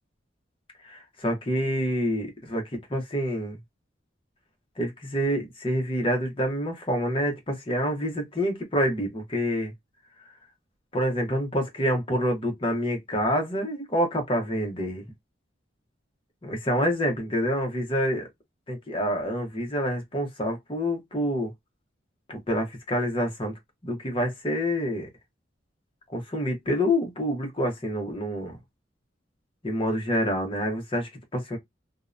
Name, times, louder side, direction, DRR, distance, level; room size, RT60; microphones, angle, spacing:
voice 1, 0.8-2.6 2.9-3.6 4.8-9.7 10.9-15.0 16.4-18.3 18.7-21.5 22.3-23.5 23.8-25.1 26.1-28.6 29.6-31.6, equal, 30° left, 0.8 m, -27 dB
2.6 x 2.1 x 2.4 m
head